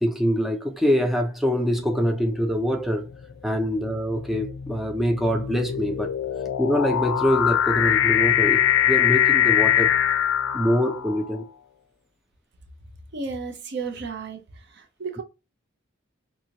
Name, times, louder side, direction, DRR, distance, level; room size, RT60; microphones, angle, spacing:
voice 1, 0.0-3.1 3.4-6.1 6.6-9.9 10.5-11.4, equal, ahead, 0.4 m, -24 dB
sound 1, 1.9-2.3 3.1-11.3, left 10 dB, 80° left, 0.4 m, -23 dB
voice 2, 13.1-14.4 14.7-15.2, right 4 dB, 55° right, 0.6 m, -33 dB
2.8 x 2.7 x 2.7 m
head